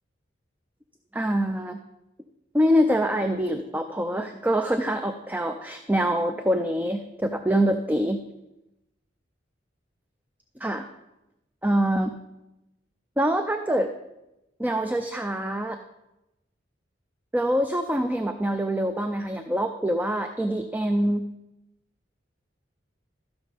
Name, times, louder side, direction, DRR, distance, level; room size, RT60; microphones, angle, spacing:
voice 1, 1.1-1.8 2.5-8.2 10.6-10.9 11.6-12.1 13.2-13.9 14.6-15.8 17.3-21.3, equal, 10° right, 6 dB, 0.4 m, -25 dB
14.0 x 6.1 x 5.0 m, 0.95 s
head